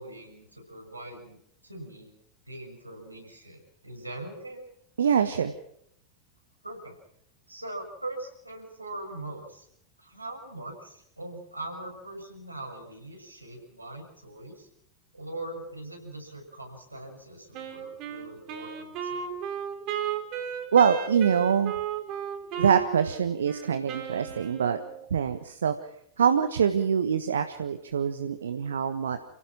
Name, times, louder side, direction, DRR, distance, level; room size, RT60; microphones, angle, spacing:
voice 1, 0.0-2.1 2.5-4.6 6.6-7.0 7.5-9.7 10.0-14.7 15.1-19.3, right 2 dB, 85° right, 2 dB, 6.7 m, -41 dB
voice 2, 5.0-5.5 20.7-21.7 22.6-24.8 25.1-25.7 26.2-29.2, right 7 dB, 65° right, 10 dB, 1.4 m, -24 dB
Wind instrument woodwind instrument, 17.5-25.0, right 8 dB, 40° right, 4.0 m, -35 dB
30.0 x 17.0 x 6.2 m, 0.74 s
figure-of-eight pair, 90°, 0 cm